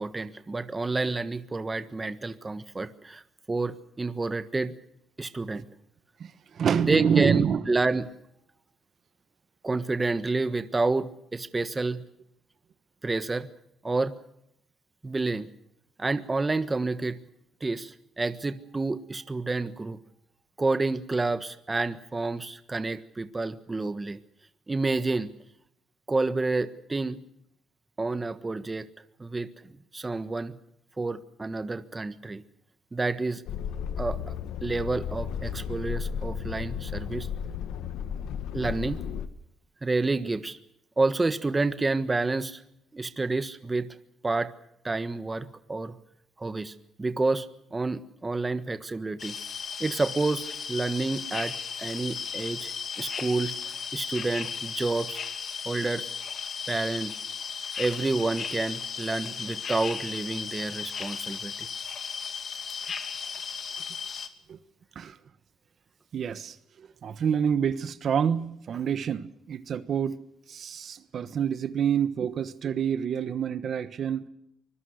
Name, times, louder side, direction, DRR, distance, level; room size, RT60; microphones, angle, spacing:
voice 1, 0.0-3.2 3.5-4.7 5.2-5.7 6.8-8.1 9.6-12.0 13.0-13.5 13.8-14.1 15.0-15.5 16.0-17.2 17.6-20.0 20.6-24.2 24.7-25.3 26.1-27.2 28.0-28.9 29.2-29.5 29.9-30.5 31.0-32.4 32.9-33.4 34.0-34.3 34.6-37.3 38.5-39.0 39.8-40.6 41.0-42.6 42.9-43.9 44.2-44.5 44.8-45.9 46.4-49.4 49.8-51.5 51.8-52.7 53.0-53.6 53.9-55.2 55.6-56.1 56.7-57.1 57.8-61.7, right 3 dB, 20° right, 11 dB, 1.4 m, -29 dB
voice 2, 6.2-7.6 64.5-64.6 64.9-65.2 66.1-70.2 70.5-74.3, right 8 dB, 50° right, 13 dB, 1.2 m, -27 dB
sound 1, 33.5-39.3, left 8 dB, 85° left, 1.7 m, -34 dB
sound 2, 49.2-64.3, left 6 dB, 45° left, 2.5 m, -35 dB
25.0 x 21.5 x 6.5 m, 0.78 s
cardioid pair, 120°, 0 cm